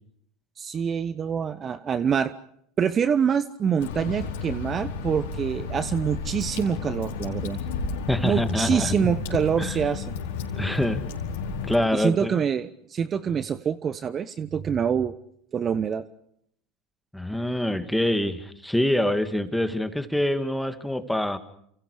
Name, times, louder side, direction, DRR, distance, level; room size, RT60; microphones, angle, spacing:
voice 1, 0.6-2.3 2.8-7.6 8.2-10.1 11.9-15.1 15.5-16.0, right 7 dB, 30° right, 14 dB, 1.0 m, -25 dB
Water / Drip, 3.8-11.7, left 5 dB, 70° left, 4.6 m, -32 dB
voice 2, 8.1-9.1 9.6-9.8 10.6-11.0 11.7-12.4 17.1-21.4, left 1 dB, 5° left, 9 dB, 2.4 m, -25 dB
29.5 x 28.5 x 5.0 m, 0.69 s
hypercardioid pair, 80°, 0 cm